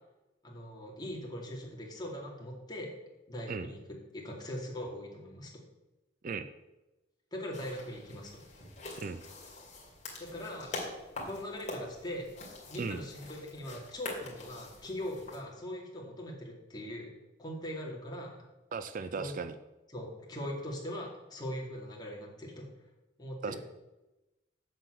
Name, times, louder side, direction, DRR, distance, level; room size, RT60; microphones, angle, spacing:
voice 1, 0.4-2.9 3.3-3.8 4.1-5.6 7.3-8.4 10.2-10.8 11.2-12.3 12.7-17.1 17.4-18.4 19.2-19.3 19.9-22.7 23.2-23.6, equal, 25° left, -1 dB, 2.3 m, -41 dB
sound 1, 7.5-15.4, left 2 dB, 40° left, 2.6 m, -45 dB
voice 2, 18.7-19.5 23.4-23.6, right 4 dB, 45° right, 12 dB, 0.4 m, -36 dB
7.7 x 6.6 x 7.7 m, 1.0 s
head